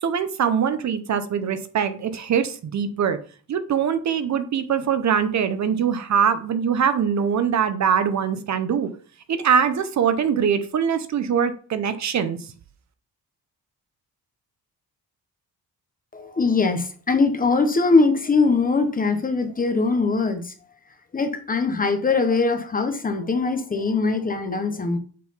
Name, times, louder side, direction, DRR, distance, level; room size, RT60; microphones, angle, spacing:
voice 1, 0.0-3.2 3.5-8.9 9.3-12.4, right 7 dB, 45° right, 0.7 m, -22 dB
voice 2, 16.1-20.5 21.1-25.0, left 4 dB, 20° left, 0.7 m, -21 dB
7.5 x 3.9 x 5.5 m
wide cardioid pair, 175°, 38 cm